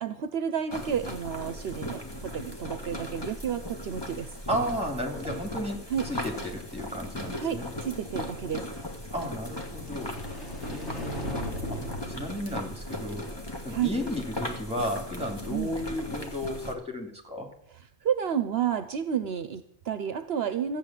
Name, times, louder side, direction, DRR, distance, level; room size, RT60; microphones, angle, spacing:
voice 1, 0.0-4.3 5.9-6.1 7.4-8.6 13.7-13.9 15.5-15.7 18.0-20.8, right 8 dB, 65° right, 11 dB, 0.9 m, -31 dB
sound 1, 0.7-16.7, left 1 dB, 20° left, 1.7 m, -38 dB
voice 2, 4.5-7.7 9.1-10.2 10.7-11.2 11.7-11.8 12.2-13.3 13.6-17.5, equal, 5° right, 3 dB, 2.7 m, -33 dB
sound 2, 9.4-13.6, equal, 90° left, 3.9 m, -38 dB
14.5 x 9.0 x 7.4 m, 0.70 s
omnidirectional pair, 1.1 m